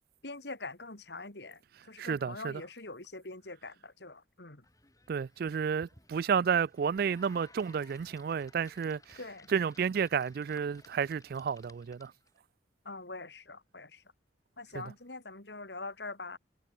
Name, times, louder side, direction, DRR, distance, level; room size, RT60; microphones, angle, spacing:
voice 1, 0.2-1.6 1.9-4.6 9.2-9.5 12.9-14.0 14.6-16.4, left 3 dB, 65° left, 3.5 m, -44 dB
voice 2, 2.0-2.6 5.1-9.2 9.5-12.1 14.7-14.8, right 7 dB, 55° right, 0.3 m, -31 dB
sound 1, 4.6-12.4, left 3 dB, 20° left, 4.2 m, -60 dB
head